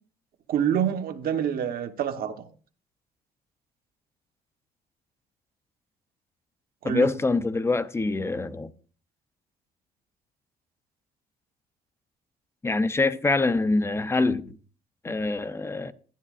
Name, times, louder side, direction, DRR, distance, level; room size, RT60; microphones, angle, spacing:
voice 1, 0.5-2.3 6.8-7.1, right 9 dB, 60° right, 0.9 m, -26 dB
voice 2, 6.8-8.7 12.6-14.6 15.0-15.9, left 3 dB, 15° left, 0.5 m, -25 dB
12.0 x 10.5 x 2.4 m
cardioid pair, 110°, 17 cm